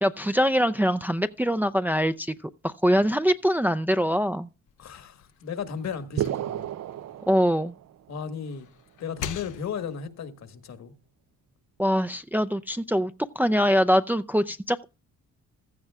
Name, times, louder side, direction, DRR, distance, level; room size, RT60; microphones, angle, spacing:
voice 1, 0.0-2.3 2.6-4.5 7.3-7.7 11.8-14.8, equal, 5° right, 0.5 m, -23 dB
sound 1, 4.7-7.9 8.3-10.1, left 9 dB, 85° left, 1.0 m, -43 dB
voice 2, 4.8-6.7 8.1-8.7 9.0-10.9, left 6 dB, 60° left, 1.8 m, -35 dB
sound 2, 6.2-8.1, right 12 dB, 60° right, 0.6 m, -32 dB
15.5 x 13.5 x 2.4 m
cardioid pair, 90°, 30 cm